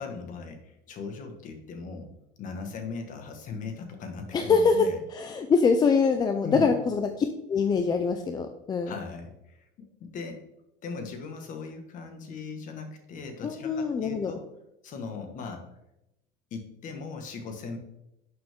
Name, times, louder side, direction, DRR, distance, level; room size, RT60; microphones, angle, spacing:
voice 1, 0.0-2.1 2.4-5.0 6.4-6.7 8.9-9.6 10.0-10.4 10.8-14.4 14.8-15.6 16.5-17.8, left 4 dB, 40° left, 5 dB, 1.7 m, -38 dB
voice 2, 4.3-8.9 13.4-14.3, left 5 dB, 20° left, 6 dB, 0.5 m, -24 dB
11.5 x 6.6 x 3.7 m, 0.86 s
cardioid pair, 165°, 20 cm